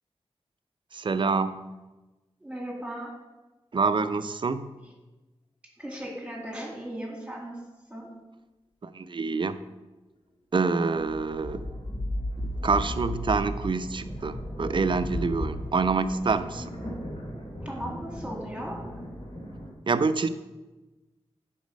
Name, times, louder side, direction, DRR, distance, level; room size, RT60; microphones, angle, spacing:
voice 1, 0.9-1.7 3.7-4.7 8.8-9.6 10.5-11.7 12.4-16.7 19.9-20.3, right 4 dB, 45° right, 11 dB, 0.5 m, -26 dB
voice 2, 2.4-3.1 5.8-7.6 7.9-8.1 17.6-18.8, right 1 dB, 10° right, -1 dB, 2.1 m, -37 dB
sound 1, 11.0-19.7, left 1 dB, 55° left, 3.1 m, -35 dB
10.5 x 4.1 x 5.2 m, 1.1 s
wide cardioid pair, 85°, 11 cm